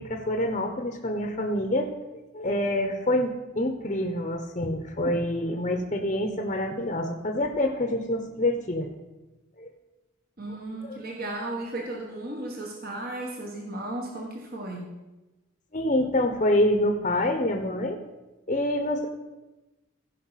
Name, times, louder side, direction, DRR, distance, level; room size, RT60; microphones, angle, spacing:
voice 1, 0.0-1.9 2.3-8.9 9.6-9.7 10.8-11.0 15.7-18.0 18.5-19.1, left 1 dB, 35° left, 4 dB, 0.8 m, -26 dB
voice 2, 10.4-14.9, right 1 dB, 45° right, -1 dB, 1.3 m, -35 dB
15.5 x 5.4 x 5.7 m, 1.1 s
head